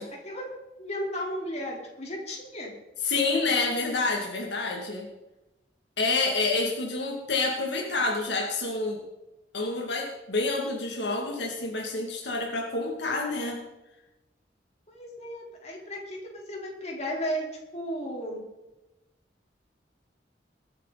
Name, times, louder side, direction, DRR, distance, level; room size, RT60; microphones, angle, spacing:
voice 1, 0.2-2.7 14.9-17.5 17.7-18.5, equal, 40° left, -1 dB, 4.2 m, -34 dB
voice 2, 3.0-5.1 6.0-9.0 9.5-13.6, left 3 dB, 75° left, 0 dB, 2.6 m, -28 dB
22.0 x 9.6 x 4.3 m, 1.0 s
head